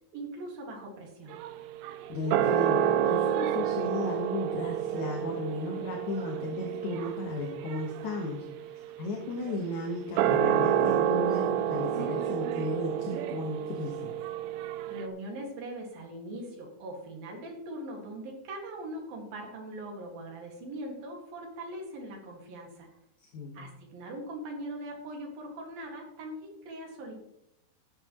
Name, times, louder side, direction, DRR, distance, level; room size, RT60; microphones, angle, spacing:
voice 1, 0.1-1.4 14.9-22.9 23.5-27.1, right 1 dB, 65° right, 0 dB, 3.7 m, -41 dB
sound 1, 1.3-15.1, right 10 dB, 85° right, 2.1 m, -29 dB
voice 2, 2.1-8.4 9.0-14.1 23.2-23.7, left 2 dB, 60° left, 0 dB, 2.2 m, -35 dB
14.0 x 9.7 x 3.1 m, 0.81 s
omnidirectional pair, 4.8 m